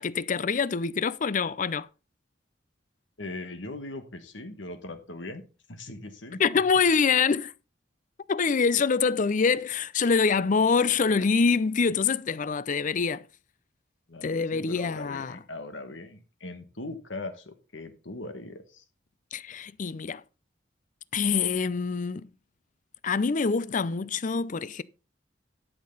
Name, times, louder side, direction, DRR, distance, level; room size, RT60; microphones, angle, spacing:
voice 1, 0.0-1.9 6.4-7.5 8.3-13.2 14.2-15.4 19.3-20.2 21.1-22.3 23.0-24.8, left 5 dB, 40° left, 0.5 m, -25 dB
voice 2, 3.2-5.4 5.7-6.6 14.1-18.8, left 2 dB, 70° left, 1.6 m, -40 dB
12.5 x 6.7 x 4.0 m
head